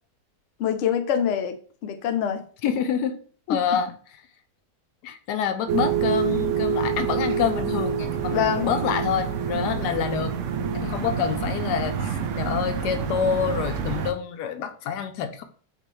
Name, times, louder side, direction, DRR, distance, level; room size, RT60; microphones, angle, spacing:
voice 1, 0.6-1.5 1.8-2.4 3.5-3.6 8.3-8.7, left 9 dB, 65° left, 0.7 m, -24 dB
voice 2, 2.6-3.2 3.5-3.9 5.0-10.4 10.7-15.4, left 8 dB, 90° left, 1.2 m, -27 dB
sound 1, 5.7-14.1, right 6 dB, 70° right, 0.7 m, -27 dB
5.1 x 2.5 x 3.1 m
omnidirectional pair, 1.7 m